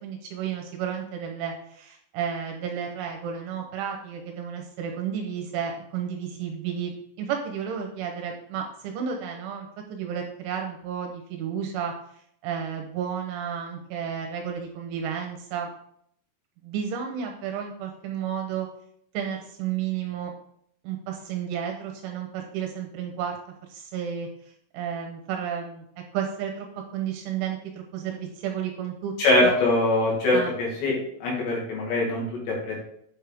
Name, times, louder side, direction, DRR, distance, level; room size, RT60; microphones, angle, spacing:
voice 1, 0.0-11.9 12.4-15.7 16.6-18.7 19.1-20.3 20.8-23.4 23.7-24.3 24.7-25.8 26.1-26.7 26.9-29.1 29.4-29.6 30.3-30.5, right 8 dB, 75° right, 2 dB, 3.1 m, -32 dB
voice 2, 29.2-31.0 31.2-32.8, left 2 dB, 60° left, -3 dB, 4.2 m, -23 dB
8.8 x 6.4 x 3.5 m, 0.69 s
omnidirectional pair, 6.0 m